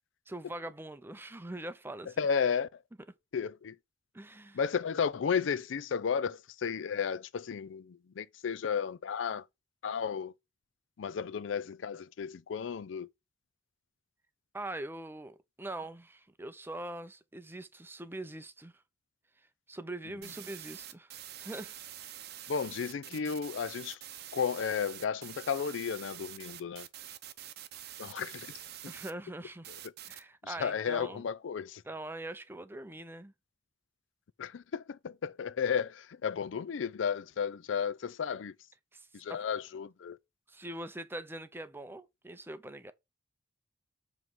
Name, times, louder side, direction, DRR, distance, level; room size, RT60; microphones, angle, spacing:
voice 1, 0.3-2.2 4.1-4.6 14.5-18.7 19.7-21.7 23.1-23.3 28.8-29.7 30.1-31.3 31.8-33.3 38.9-39.5 40.5-42.9, right 1 dB, 10° right, 0.5 m, -43 dB
voice 2, 2.2-2.7 3.3-3.7 4.5-9.4 9.8-10.3 11.0-13.1 22.5-24.0 24.3-26.9 28.0-28.6 30.4-31.8 34.4-38.5 39.1-40.2, left 6 dB, 75° left, 0.4 m, -33 dB
sound 1, 20.2-29.1 29.6-30.2, right 12 dB, 55° right, 0.6 m, -46 dB
7.3 x 3.1 x 6.1 m
head